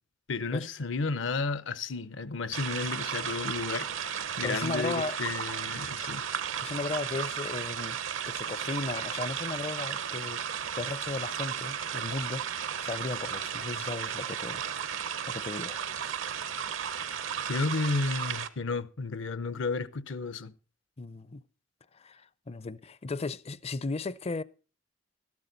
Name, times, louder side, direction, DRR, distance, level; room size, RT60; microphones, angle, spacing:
voice 1, 0.3-6.2 17.5-20.5, left 3 dB, 70° left, 0.7 m, -32 dB
sound 1, 2.5-18.5, right 8 dB, 80° right, 0.8 m, -34 dB
voice 2, 4.4-5.2 6.6-8.0 8.3-10.4 10.7-12.5 12.8-14.6 15.3-15.8 21.0-21.4 21.9-24.4, left 3 dB, 30° left, 0.5 m, -35 dB
13.0 x 12.0 x 4.0 m
head